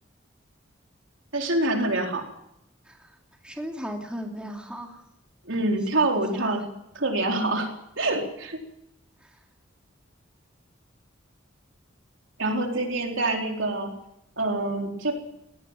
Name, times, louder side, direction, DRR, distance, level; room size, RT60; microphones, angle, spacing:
voice 1, 1.3-2.2 5.5-6.6 7.0-8.6 12.4-13.9 14.4-15.1, right 2 dB, 70° right, 2 dB, 4.1 m, -26 dB
voice 2, 3.4-5.0 5.9-6.6 9.2-9.3, equal, 5° right, 1 dB, 2.8 m, -37 dB
18.0 x 17.0 x 9.0 m, 0.82 s
head